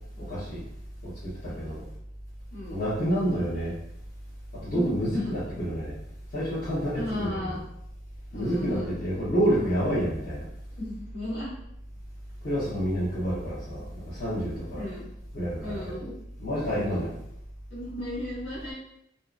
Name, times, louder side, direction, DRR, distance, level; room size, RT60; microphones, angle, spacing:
voice 1, 0.3-0.6 1.4-1.8 2.7-3.7 4.6-6.0 6.3-7.6 8.3-10.4 12.4-14.8 15.3-15.9 16.4-17.1, equal, 50° left, -13 dB, 0.9 m, -28 dB
voice 2, 1.4-1.8 2.5-2.8 4.7-5.3 7.0-7.6 8.3-9.0 10.8-11.5 14.5-15.1 15.6-16.1 16.8-17.1 17.7-18.7, left 1 dB, 80° left, -9 dB, 1.1 m, -35 dB
2.7 x 2.1 x 2.4 m, 0.79 s
head